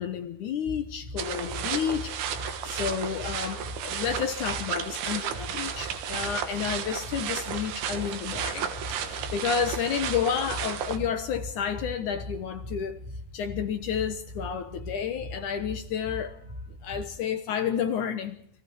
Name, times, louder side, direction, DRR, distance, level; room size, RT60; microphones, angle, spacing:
voice 1, 0.0-13.0 13.3-16.4 16.7-18.4, left 7 dB, 65° left, 2.3 m, -31 dB
sound 1, 0.6-17.0, left 1 dB, 15° right, 2.4 m, -41 dB
sound 2, 1.2-11.0, right 9 dB, 90° right, 3.4 m, -33 dB
29.0 x 22.0 x 4.7 m
omnidirectional pair, 4.4 m